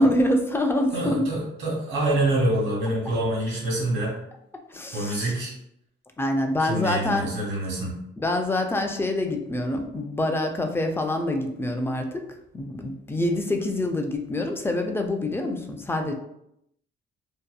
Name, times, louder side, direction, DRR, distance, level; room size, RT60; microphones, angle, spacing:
voice 1, 0.0-1.3 4.7-5.3 6.2-7.3 8.2-12.2 12.5-16.1, left 1 dB, 10° left, 4 dB, 0.3 m, -25 dB
voice 2, 0.9-4.1 4.9-5.5 6.6-7.9, right 1 dB, 75° right, -3 dB, 1.2 m, -26 dB
2.7 x 2.2 x 2.2 m, 0.78 s
cardioid pair, 90°, 20 cm